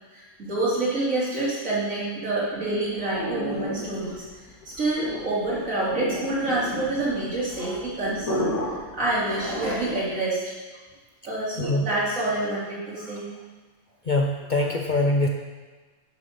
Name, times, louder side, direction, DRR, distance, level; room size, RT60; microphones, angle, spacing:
voice 1, 0.1-4.3 4.7-8.5 8.9-10.4 11.2-13.3, right 2 dB, 65° right, -7 dB, 3.7 m, -27 dB
sound 1, 2.4-10.2, left 1 dB, 85° left, 2.4 m, -33 dB
voice 2, 14.1-15.3, left 2 dB, 45° left, 1 dB, 0.7 m, -23 dB
11.0 x 6.9 x 5.3 m, 1.3 s
omnidirectional pair, 1.5 m